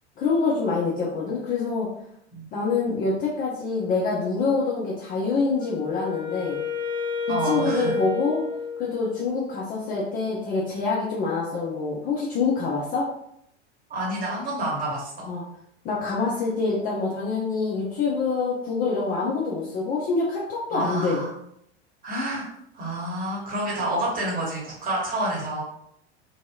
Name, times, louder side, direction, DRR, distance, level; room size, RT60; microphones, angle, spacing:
voice 1, 0.2-1.9 2.5-6.6 7.4-8.4 8.8-13.1 15.3-15.4 15.8-21.2, left 4 dB, 25° left, -5 dB, 0.5 m, -26 dB
Wind instrument woodwind instrument, 5.6-9.5, left 4 dB, 80° left, 1.3 m, -30 dB
voice 2, 7.3-7.9 13.9-15.3 20.7-21.3 22.0-25.6, right 1 dB, 25° right, -4 dB, 1.1 m, -29 dB
2.6 x 2.6 x 2.2 m, 0.75 s
figure-of-eight pair, 85°, 35 cm